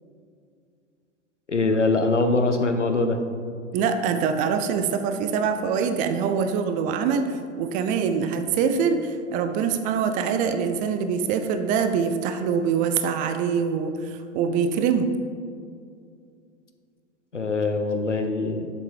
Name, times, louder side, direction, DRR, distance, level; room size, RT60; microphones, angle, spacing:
voice 1, 1.5-3.2 17.3-18.7, left 3 dB, 90° left, 7 dB, 0.8 m, -23 dB
voice 2, 3.7-15.1, right 6 dB, 25° right, 8 dB, 0.4 m, -24 dB
7.2 x 7.1 x 4.7 m, 2.3 s
figure-of-eight pair, 95°, 35 cm